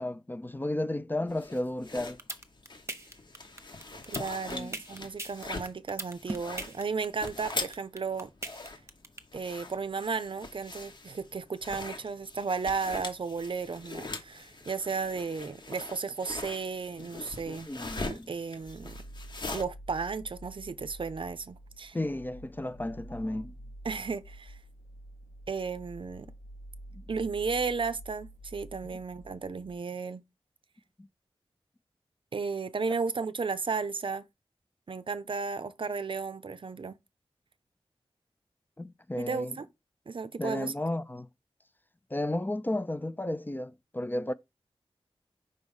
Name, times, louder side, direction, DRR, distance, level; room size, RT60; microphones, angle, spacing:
voice 1, 0.0-2.2 4.5-4.7 17.7-18.3 21.9-23.5 38.8-39.6 40.4-41.3 42.1-44.3, left 1 dB, 20° left, 0.4 m, -33 dB
sound 1, 1.3-19.6, left 3 dB, 50° left, 1.1 m, -42 dB
sound 2, 2.0-9.2, right 2 dB, 25° right, 0.9 m, -38 dB
voice 2, 4.1-8.3 8.6-8.7 9.3-17.7 18.0-19.0 19.5-22.0 23.8-24.6 25.5-26.3 27.1-30.2 32.3-34.3 34.9-37.0 39.2-39.7 40.1-40.7, right 5 dB, 55° right, 0.6 m, -34 dB
sound 3, 18.6-29.8, right 1 dB, 80° left, 1.4 m, -48 dB
5.4 x 3.2 x 5.4 m
wide cardioid pair, 75°, 10 cm